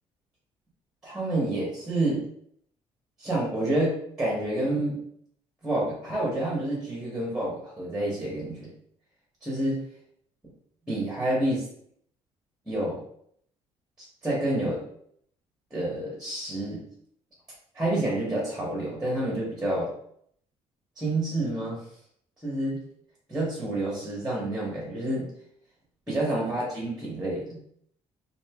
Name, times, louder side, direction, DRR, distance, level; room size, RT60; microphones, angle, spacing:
voice 1, 1.0-2.2 3.2-5.0 5.6-8.7 9.4-9.8 10.9-11.6 12.7-13.0 14.2-14.8 15.7-16.8 17.7-19.9 21.0-21.8 22.4-22.8 23.3-25.3 26.1-27.6, right 1 dB, 5° right, -5 dB, 1.1 m, -28 dB
5.2 x 2.8 x 2.3 m, 0.68 s
cardioid pair, 165°, 11 cm